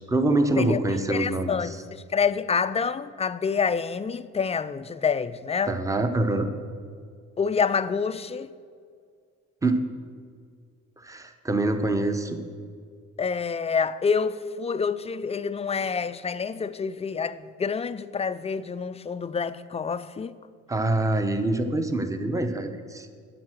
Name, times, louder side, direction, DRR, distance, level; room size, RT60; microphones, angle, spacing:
voice 1, 0.0-1.8 5.7-6.5 9.6-9.8 11.0-12.4 20.7-23.1, right 2 dB, 10° right, 0.8 m, -25 dB
voice 2, 0.6-5.8 7.4-8.5 13.2-20.3, left 6 dB, 20° left, 0.3 m, -27 dB
9.5 x 6.5 x 6.2 m
cardioid pair, 90°, 30 cm